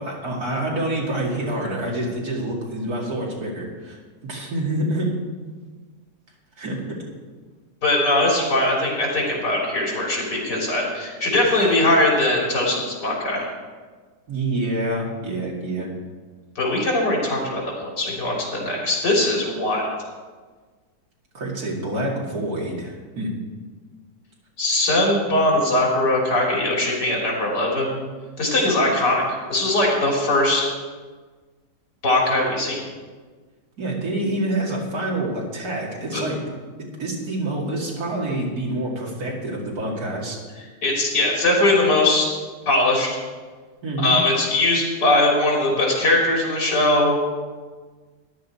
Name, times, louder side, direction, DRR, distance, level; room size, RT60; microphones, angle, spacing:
voice 1, 0.0-4.0 4.2-5.1 6.6-6.8 14.3-15.9 21.3-23.3 33.8-36.4 36.8-40.4 43.8-44.2, right 1 dB, 60° right, -3 dB, 3.0 m, -27 dB
voice 2, 7.8-13.5 16.6-19.9 24.6-28.0 28.4-29.2 29.5-30.6 32.0-32.8 36.1-36.2 40.8-42.4 42.7-43.2 44.0-47.2, left 2 dB, 85° left, -3 dB, 4.0 m, -20 dB
14.5 x 10.5 x 4.4 m, 1.4 s
omnidirectional pair, 1.8 m